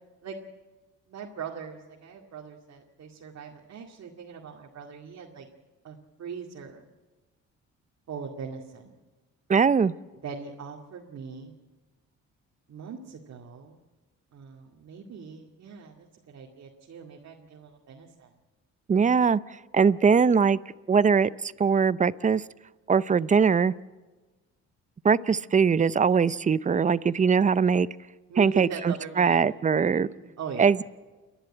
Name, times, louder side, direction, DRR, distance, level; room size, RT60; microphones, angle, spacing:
voice 1, 1.1-5.5 5.8-6.9 8.1-8.9 10.2-11.5 12.7-13.8 14.3-18.3 28.3-29.4 29.9-30.8, right 6 dB, 60° right, 0 dB, 2.3 m, -41 dB
voice 2, 9.5-9.9 18.9-19.4 19.7-20.6 20.9-22.4 22.9-23.7 25.0-27.9 28.4-30.1 30.6-30.8, right 6 dB, 25° right, 18 dB, 0.6 m, -21 dB
29.5 x 11.5 x 8.9 m, 1.3 s
cardioid pair, 90°, 30 cm